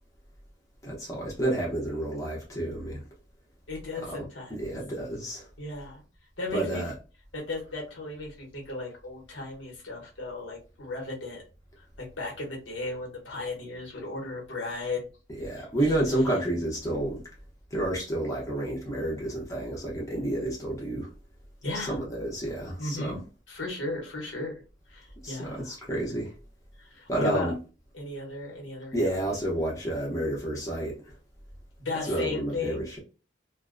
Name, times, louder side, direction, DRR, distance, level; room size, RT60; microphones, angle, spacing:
voice 1, 0.8-3.0 4.5-5.5 6.5-6.9 15.4-17.2 17.7-21.1 21.7-23.2 25.2-26.3 27.1-27.5 28.9-31.0 32.1-33.0, right 1 dB, 15° left, 0.7 m, -30 dB
voice 2, 3.7-4.6 5.6-6.0 6.4-6.8 7.3-11.4 11.8-15.0 15.6-15.9 21.6-22.0 22.8-23.2 23.5-24.6 24.9-25.7 26.8-27.5 27.9-29.1 31.8-32.9, left 2 dB, 75° left, 1.0 m, -35 dB
2.6 x 2.2 x 2.4 m
head